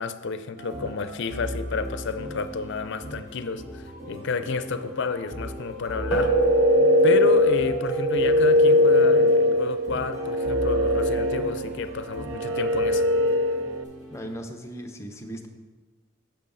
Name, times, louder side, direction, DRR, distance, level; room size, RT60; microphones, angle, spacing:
voice 1, 0.0-6.3 7.0-13.0, left 4 dB, 55° left, 11 dB, 0.5 m, -31 dB
sound 1, 0.6-14.4, equal, 35° right, 1.6 m, -38 dB
sound 2, 6.0-13.8, left 1 dB, 70° right, 0.4 m, -21 dB
sound 3, 6.1-10.8, right 5 dB, 5° right, 3.1 m, -29 dB
voice 2, 14.1-15.5, equal, 15° left, 4 dB, 0.7 m, -37 dB
9.8 x 6.8 x 3.9 m, 1.4 s
head